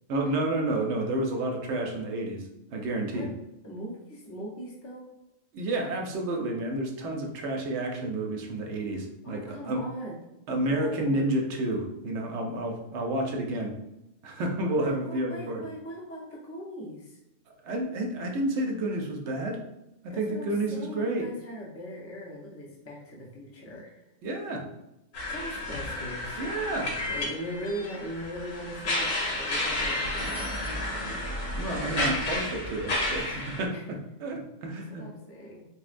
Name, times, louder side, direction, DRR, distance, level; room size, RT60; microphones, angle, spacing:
voice 1, 0.1-3.3 5.5-9.8 10.5-13.7 14.2-15.6 17.6-19.6 20.0-21.3 24.2-24.7 26.4-27.0 31.6-35.0, right 1 dB, 70° right, 2 dB, 0.8 m, -30 dB
voice 2, 3.6-5.1 9.2-10.2 10.7-11.6 14.7-17.2 20.1-24.0 25.3-26.4 27.1-30.5 33.7-33.8 34.9-35.7, equal, 25° left, -3 dB, 0.3 m, -40 dB
sound 1, 25.1-33.6, left 1 dB, 75° left, 1.2 m, -31 dB
4.1 x 2.1 x 2.4 m, 0.91 s
omnidirectional pair, 1.3 m